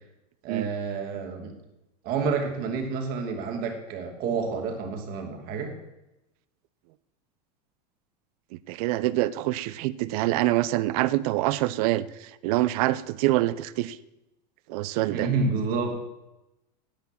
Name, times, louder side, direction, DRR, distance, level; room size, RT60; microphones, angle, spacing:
voice 1, 0.4-1.5 2.0-5.7 15.1-16.0, right 4 dB, 45° right, 3 dB, 2.7 m, -29 dB
voice 2, 8.7-14.0 14.7-15.3, right 16 dB, 65° right, 17 dB, 0.7 m, -25 dB
10.5 x 8.4 x 7.3 m, 0.94 s
supercardioid pair, 135°, 21 cm